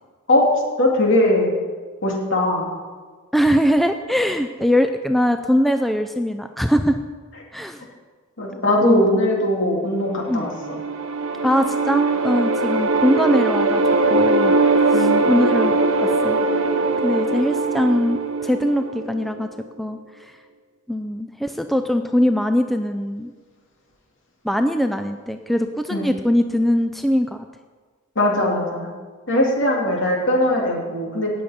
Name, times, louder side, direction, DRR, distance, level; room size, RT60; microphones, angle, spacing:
voice 1, 0.8-1.5 2.0-2.7 8.4-10.8 14.9-15.3 25.9-26.0 28.2-28.9 29.3-31.3, left 1 dB, 60° left, -1 dB, 2.9 m, -20 dB
voice 2, 3.3-7.0 7.5-7.8 8.8-9.1 10.3-10.5 11.4-13.8 14.1-14.6 14.9-16.4 17.0-19.5 19.8-20.0 20.9-23.3 24.4-27.5, equal, ahead, 7 dB, 0.4 m, -21 dB
sound 1, 10.3-19.5, right 3 dB, 70° right, 1.0 m, -20 dB
18.0 x 7.0 x 5.2 m, 1.5 s
head